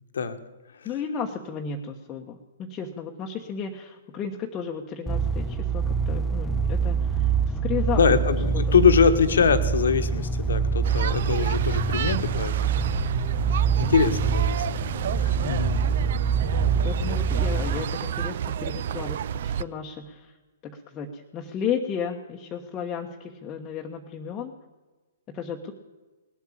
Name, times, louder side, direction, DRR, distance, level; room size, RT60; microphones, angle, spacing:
voice 1, 0.8-8.0 13.6-13.9 15.4-15.6 16.8-20.3 20.6-24.5 25.3-25.7, left 6 dB, 25° left, 1 dB, 1.2 m, -33 dB
sound 1, 5.1-17.8, right 5 dB, 5° left, 0.7 m, -25 dB
voice 2, 7.9-13.0 13.4-13.5 13.8-14.9 15.2-15.8, left 6 dB, 70° left, 9 dB, 1.4 m, -23 dB
sound 2, 10.8-19.6, right 9 dB, 55° right, 0.4 m, -29 dB
19.0 x 8.2 x 8.6 m, 1.2 s
figure-of-eight pair, 120°, 0 cm